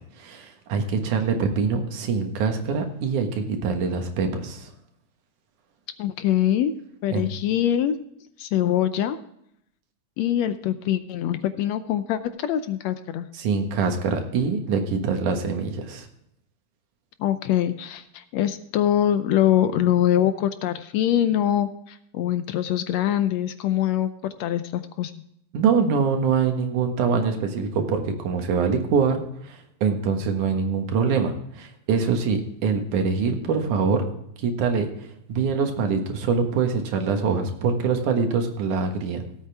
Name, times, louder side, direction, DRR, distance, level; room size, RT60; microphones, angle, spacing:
voice 1, 0.2-4.7 7.1-7.3 13.3-16.1 25.5-34.0 34.4-34.9 35.3-39.3, right 5 dB, 85° right, 5 dB, 3.0 m, -24 dB
voice 2, 6.0-6.7 7.0-8.0 8.4-9.2 10.2-13.3 17.2-25.1, left 11 dB, 75° left, 11 dB, 1.7 m, -23 dB
17.0 x 8.3 x 3.4 m, 0.74 s
omnidirectional pair, 3.4 m